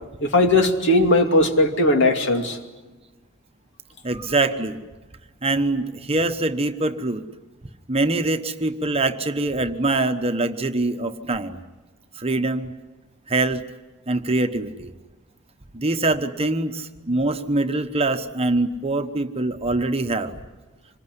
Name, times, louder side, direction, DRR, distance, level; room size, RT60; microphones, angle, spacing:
voice 1, 0.2-2.6, left 1 dB, 60° left, 4 dB, 2.7 m, -18 dB
voice 2, 4.0-4.8 5.4-7.2 7.9-11.6 12.2-12.7 13.3-13.6 14.1-14.9 15.7-20.4, right 2 dB, 30° right, 7 dB, 1.1 m, -24 dB
26.5 x 22.0 x 9.9 m, 1.2 s
head